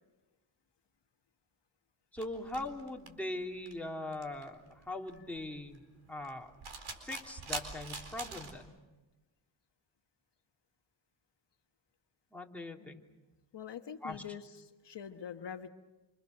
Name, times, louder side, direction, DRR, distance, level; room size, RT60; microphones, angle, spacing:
voice 1, 2.1-5.8 6.1-6.5 7.0-8.7 12.3-13.0 14.0-14.2, left 2 dB, 5° left, 0 dB, 3.0 m, -41 dB
sound 1, 2.2-8.6, right 4 dB, 75° right, 4.3 m, -45 dB
voice 2, 13.5-15.7, left 8 dB, 60° left, 7 dB, 1.2 m, -44 dB
27.5 x 26.5 x 6.6 m, 1.1 s
cardioid pair, 75°, 47 cm